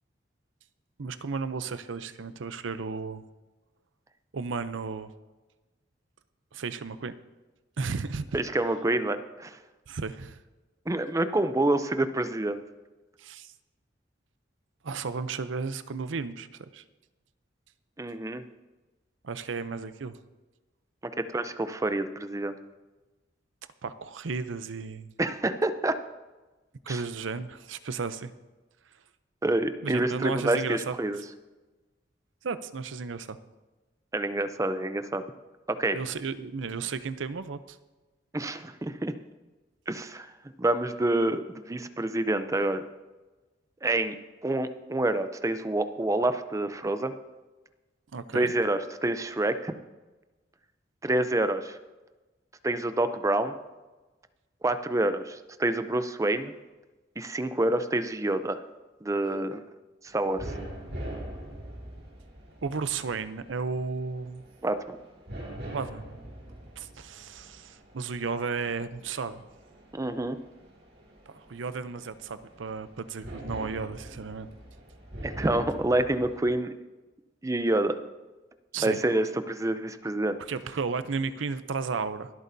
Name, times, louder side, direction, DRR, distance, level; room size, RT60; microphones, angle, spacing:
voice 1, 1.0-3.3 4.3-5.1 6.5-7.1 7.8-8.4 9.9-10.4 13.2-13.5 14.8-16.8 19.2-20.2 23.8-25.1 26.9-28.3 29.8-30.9 32.4-33.4 35.9-37.8 48.1-48.5 62.6-64.4 65.7-66.0 66.8-69.4 71.3-74.5 78.7-79.0 80.5-82.3, right 4 dB, 90° right, 13 dB, 0.6 m, -34 dB
voice 2, 8.3-9.6 10.9-12.6 18.0-18.4 21.2-22.5 25.2-26.0 26.9-27.0 29.4-31.2 34.1-35.2 35.7-36.0 38.3-39.1 39.9-40.3 40.6-42.8 43.8-44.1 44.4-47.1 48.3-49.7 51.0-51.8 52.6-53.5 54.6-56.5 57.2-58.6 59.0-59.6 60.1-60.5 64.6-65.0 69.9-70.4 75.2-76.7 77.4-78.0 78.8-80.4, right 1 dB, 15° right, 11 dB, 0.5 m, -27 dB
sound 1, 60.1-76.5, right 1 dB, 60° right, 2.2 m, -43 dB
24.0 x 8.3 x 2.7 m, 1.2 s
head